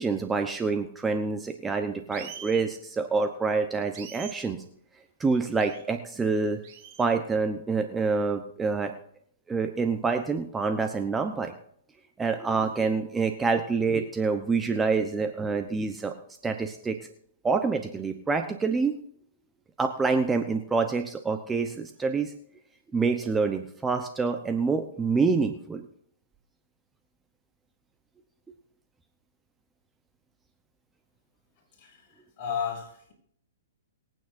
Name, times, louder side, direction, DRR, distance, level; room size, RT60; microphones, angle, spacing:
voice 1, 0.0-4.6 5.2-6.6 7.0-8.9 9.5-11.5 12.2-16.1 16.4-17.0 17.4-19.0 19.8-22.3 22.9-25.9, right 4 dB, 10° right, 6 dB, 0.9 m, -27 dB
sound 1, 2.1-2.7 3.9-4.4 5.6-5.8 6.6-7.0, right 9 dB, 40° right, 2.9 m, -43 dB
voice 2, 31.8-33.1, left 7 dB, 35° left, -1 dB, 6.4 m, -34 dB
24.0 x 9.2 x 2.6 m, 0.67 s
hypercardioid pair, 140°, 0 cm